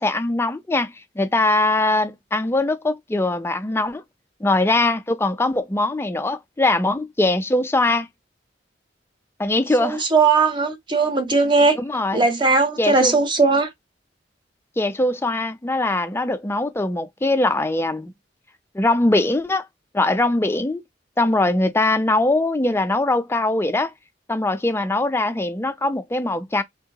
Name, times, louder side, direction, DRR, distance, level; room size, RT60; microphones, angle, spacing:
voice 1, 0.0-4.0 4.4-8.1 9.4-10.0 11.8-12.2 12.8-13.2 14.8-18.1 18.7-19.7 19.9-20.8 21.2-23.9 24.3-26.6, left 2 dB, 15° left, 0.4 m, -21 dB
voice 2, 9.8-11.8 12.1-13.7, right 4 dB, 25° right, 0.8 m, -18 dB
3.5 x 2.8 x 2.2 m
head